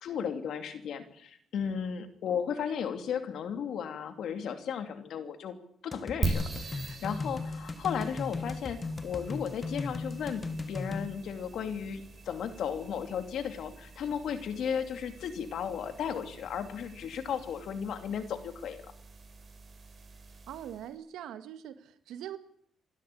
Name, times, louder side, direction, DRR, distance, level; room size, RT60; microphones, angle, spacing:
voice 1, 0.0-5.6 5.8-18.9, left 7 dB, 70° left, 9 dB, 2.8 m, -35 dB
sound 1, 5.9-11.1, left 3 dB, 25° left, 1.6 m, -37 dB
sound 2, 6.2-20.9, right 3 dB, 35° right, 4.6 m, -42 dB
voice 2, 20.5-22.4, right 10 dB, 85° right, 11 dB, 1.9 m, -42 dB
28.0 x 12.5 x 8.7 m, 0.66 s
cardioid pair, 90°, 0 cm